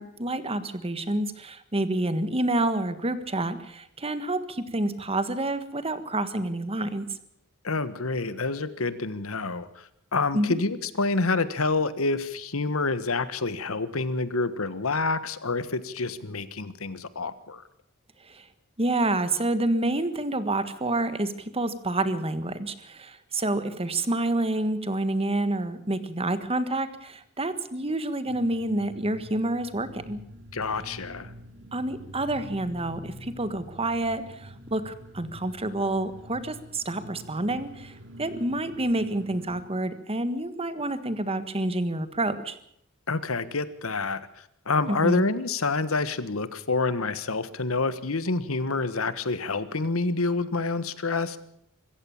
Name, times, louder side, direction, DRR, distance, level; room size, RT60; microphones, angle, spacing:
voice 1, 0.0-7.1 10.3-10.6 18.3-18.5 18.8-30.2 31.7-37.9 38.2-42.6 44.9-45.3, right 2 dB, 30° right, 12 dB, 1.5 m, -28 dB
voice 2, 7.6-17.6 30.5-31.3 43.1-51.4, left 3 dB, 90° left, 14 dB, 1.4 m, -28 dB
sound 1, 28.3-39.6, equal, 65° right, 2.6 m, -46 dB
25.0 x 14.5 x 7.2 m, 0.72 s
head